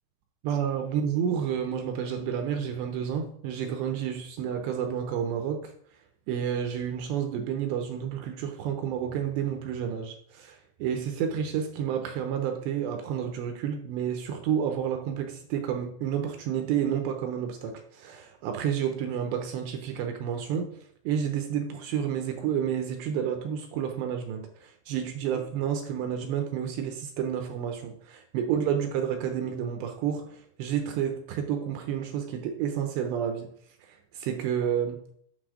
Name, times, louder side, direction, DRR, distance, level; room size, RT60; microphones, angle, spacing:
voice 1, 0.4-5.7 6.3-20.7 21.1-33.5 34.1-35.0, right 8 dB, 80° right, 5 dB, 2.7 m, -30 dB
8.3 x 7.0 x 4.9 m, 0.64 s
omnidirectional pair, 5.7 m